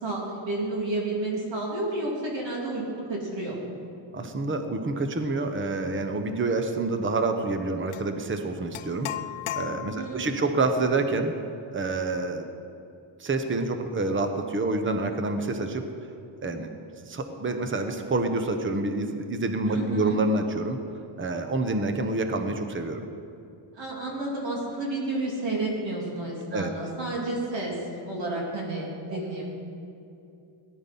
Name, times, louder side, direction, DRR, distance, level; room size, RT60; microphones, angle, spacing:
voice 1, 0.0-3.7 9.9-10.4 19.6-20.2 23.7-27.8 28.0-29.4, right 2 dB, 60° right, -3 dB, 3.3 m, -31 dB
voice 2, 4.1-9.1 9.5-11.3 11.7-12.5 13.2-15.9 16.4-16.7 17.0-20.8 21.2-23.1 26.5-26.7 29.1-29.2, right 3 dB, 25° right, 6 dB, 0.9 m, -27 dB
sound 1, 7.9-8.1 8.7-10.2, left 13 dB, 80° left, 0.6 m, -35 dB
18.0 x 11.0 x 5.5 m, 2.6 s
wide cardioid pair, 160°, 49 cm